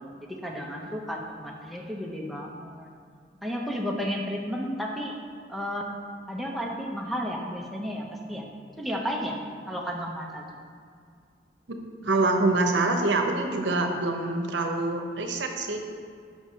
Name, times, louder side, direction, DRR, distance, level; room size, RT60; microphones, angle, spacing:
voice 1, 0.0-2.9 3.4-5.1 5.5-5.8 6.3-8.5 8.8-9.4 9.7-10.4, equal, ahead, -1 dB, 0.6 m, -33 dB
voice 2, 12.0-15.8, right 2 dB, 75° right, 4 dB, 0.8 m, -25 dB
5.9 x 4.6 x 5.6 m, 2.2 s
head